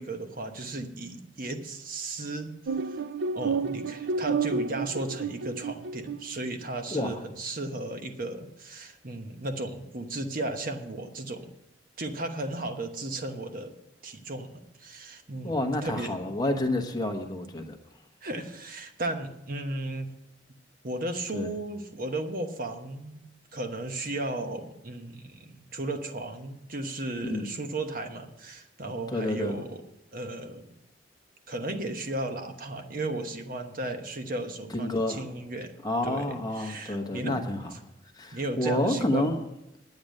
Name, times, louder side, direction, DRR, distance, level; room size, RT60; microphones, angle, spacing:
voice 1, 0.0-3.0 3.3-11.5 12.0-13.7 14.0-16.2 18.2-20.1 20.8-23.2 23.5-29.8 30.1-30.7 31.5-35.7 36.0-37.4 38.3-39.3, right 2 dB, 50° right, 6 dB, 1.1 m, -35 dB
sound 1, 2.7-6.3, right 5 dB, 75° right, 0.4 m, -30 dB
voice 2, 6.9-7.2 15.4-17.8 21.3-21.5 27.2-27.5 29.1-29.6 34.7-35.2 35.8-37.7 38.1-39.4, left 1 dB, 20° left, 4 dB, 1.2 m, -29 dB
10.5 x 8.8 x 6.5 m, 0.87 s
head